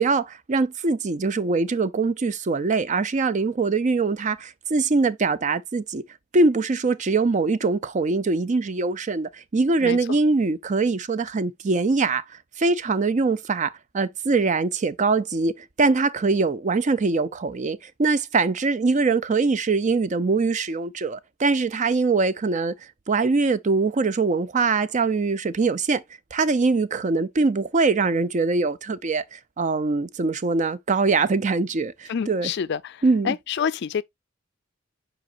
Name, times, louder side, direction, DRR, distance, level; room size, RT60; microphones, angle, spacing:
voice 1, 0.0-6.0 6.3-22.7 23.1-26.0 26.3-32.5 33.0-33.3, right 3 dB, 35° right, 0.5 m, -23 dB
voice 2, 32.1-34.0, left 7 dB, 55° left, 0.4 m, -28 dB
7.7 x 5.1 x 2.5 m
head